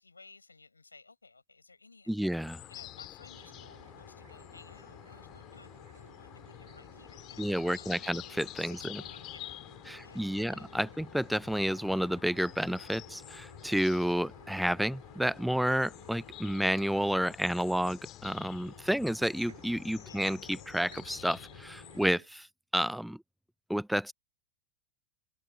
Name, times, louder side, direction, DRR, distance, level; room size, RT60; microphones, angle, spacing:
voice 1, 0.0-2.3 2.7-5.7 5.9-8.2 8.6-9.6 10.0-11.0 20.0-20.3, left 3 dB, 80° left, 6.5 m, -56 dB
voice 2, 2.1-2.6 7.4-9.0 9.9-22.5 22.7-23.2 23.7-24.1, equal, ahead, 0.6 m, -30 dB
sound 1, 2.4-22.1, left 16 dB, 35° left, 2.2 m, -49 dB
sound 2, 3.3-22.3, right 7 dB, 70° right, 7.1 m, -57 dB
figure-of-eight pair, 90°, 0 cm